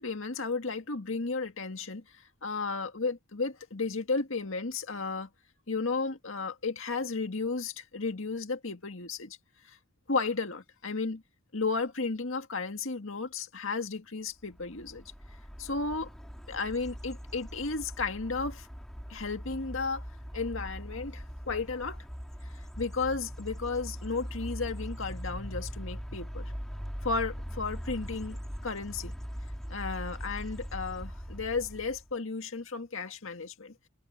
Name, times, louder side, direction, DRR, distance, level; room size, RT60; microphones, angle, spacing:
voice 1, 0.0-2.0 2.4-5.3 5.7-9.4 9.7-9.8 10.1-11.2 11.5-15.0 15.6-16.1 16.5-18.7 19.1-20.0 20.3-22.0 22.8-26.5 27.0-29.1 29.7-33.7, left 4 dB, 70° left, 1.9 m, -33 dB
sound 1, 14.5-32.1, equal, ahead, 3.5 m, -41 dB
head